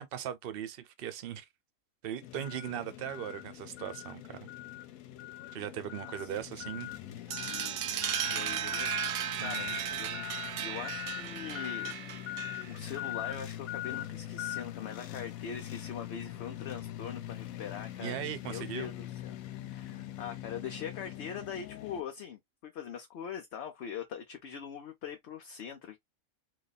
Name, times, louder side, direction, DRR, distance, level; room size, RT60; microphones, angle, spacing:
voice 1, 0.0-1.5 2.0-4.5 5.5-6.9 9.4-9.8 18.0-18.9, right 10 dB, 55° right, 0.7 m, -39 dB
sound 1, 2.2-22.0, left 14 dB, 85° left, 1.0 m, -42 dB
sound 2, 7.3-12.8, right 10 dB, 90° right, 1.1 m, -35 dB
voice 2, 8.2-10.3 10.6-12.0 12.6-18.2 18.4-19.4 19.7-26.0, left 8 dB, 60° left, 0.9 m, -42 dB
3.3 x 2.3 x 4.0 m
omnidirectional pair, 1.4 m